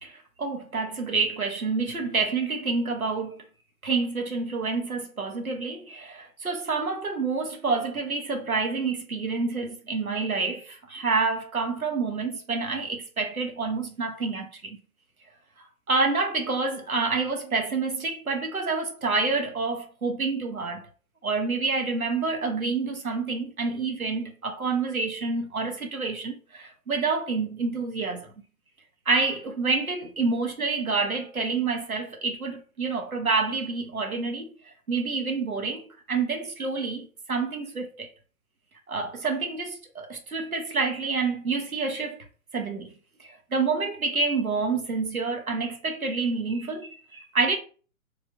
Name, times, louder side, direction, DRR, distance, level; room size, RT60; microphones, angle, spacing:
voice 1, 0.0-3.4 3.8-14.8 15.9-20.9 21.2-28.3 29.1-38.1 38.9-42.3 42.5-42.9 43.2-47.6, right 4 dB, 85° right, 0.9 m, -28 dB
3.1 x 2.4 x 2.5 m
figure-of-eight pair, 130°, 42 cm